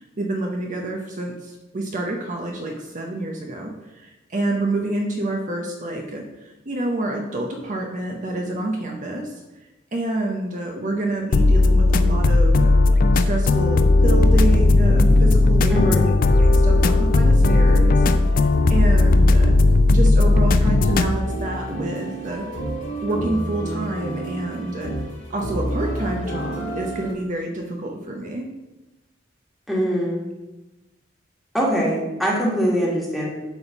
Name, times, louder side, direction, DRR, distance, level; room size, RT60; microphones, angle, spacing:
voice 1, 0.0-9.4 9.9-12.7 13.1-16.1 16.4-18.0 18.4-19.5 19.9-22.5 23.0-24.9 25.3-28.5, right 2 dB, 40° right, 1 dB, 0.7 m, -28 dB
sound 1, 11.3-21.1, left 2 dB, 45° left, 0.4 m, -16 dB
sound 2, 14.0-27.1, right 1 dB, 70° left, 2.1 m, -29 dB
voice 2, 15.7-16.1 29.7-30.2 31.5-33.3, equal, ahead, -4 dB, 1.7 m, -22 dB
8.1 x 3.6 x 5.9 m, 1.0 s
head